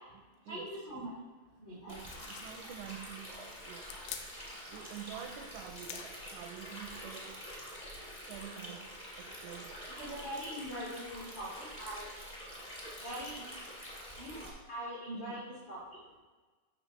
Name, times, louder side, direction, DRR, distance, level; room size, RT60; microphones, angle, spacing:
voice 1, 0.5-1.1 1.6-2.0 10.0-12.1 13.0-13.4 14.2-14.4 14.7-16.0, equal, 35° left, -7 dB, 1.9 m, -42 dB
voice 2, 1.7-3.4 3.7-3.9 4.7-7.4 8.3-9.8 15.1-15.5, right 10 dB, 85° right, 5 dB, 2.9 m, -48 dB
Stream, 1.9-14.5, equal, 15° left, 1.5 m, -46 dB
sound 1, 2.0-7.0, left 8 dB, 85° left, 2.8 m, -50 dB
14.0 x 5.9 x 3.2 m, 1.3 s
omnidirectional pair, 5.6 m